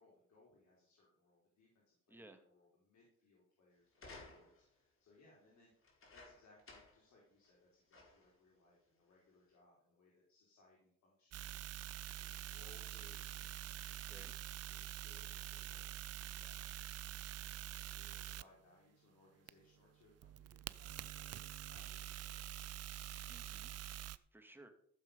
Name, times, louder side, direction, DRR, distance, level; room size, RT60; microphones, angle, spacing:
voice 1, 0.0-14.3 14.6-22.3, left 2 dB, 65° left, -4 dB, 4.3 m, -69 dB
voice 2, 2.1-2.4 14.1-14.3 23.3-24.7, right 2 dB, 5° right, 5 dB, 1.9 m, -60 dB
sound 1, 3.9-4.7 5.8-7.1 7.4-7.5 7.9-8.4 9.1-9.2, left 3 dB, 45° left, 4.3 m, -57 dB
sound 2, 11.3-18.4 19.5-24.2, right 13 dB, 55° right, 0.6 m, -46 dB
15.0 x 7.1 x 5.4 m, 0.65 s
cardioid pair, 90°, 30 cm